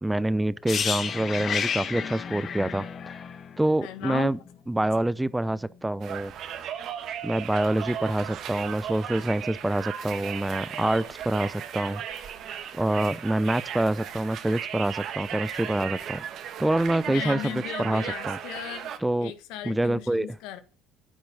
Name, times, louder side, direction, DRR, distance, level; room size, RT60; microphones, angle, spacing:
voice 1, 0.0-3.1 3.6-4.4 4.7-6.3 7.2-12.0 12.7-16.2 16.6-18.4 19.0-19.3 19.6-20.4, right 1 dB, 10° right, 0.6 m, -26 dB
sound 1, 0.7-4.5 4.8-5.0, left 7 dB, 45° left, 1.1 m, -31 dB
voice 2, 3.8-4.3 17.1-18.9 19.2-20.6, left 12 dB, 65° left, 1.4 m, -36 dB
Conversation, 6.0-19.0, right 9 dB, 55° right, 1.6 m, -36 dB
10.5 x 8.8 x 5.5 m
hypercardioid pair, 65°, 0 cm